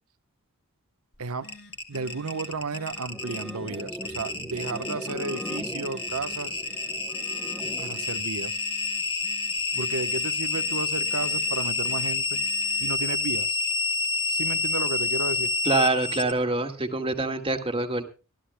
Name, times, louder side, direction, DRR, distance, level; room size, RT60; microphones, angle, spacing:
Telephone, 1.1-13.1, left 1 dB, 45° left, 6.1 m, -52 dB
sound 1, 1.4-16.3, left 3 dB, 25° left, 1.9 m, -28 dB
voice 1, 1.9-6.6 7.8-8.6 9.7-12.4 12.8-13.6 14.3-15.5, right 3 dB, 80° right, 11 dB, 1.1 m, -33 dB
sound 2, 3.1-8.1, equal, 5° left, 0.8 m, -39 dB
voice 2, 15.6-18.0, right 3 dB, 25° right, 6 dB, 1.8 m, -25 dB
24.5 x 13.0 x 2.2 m, 0.32 s
head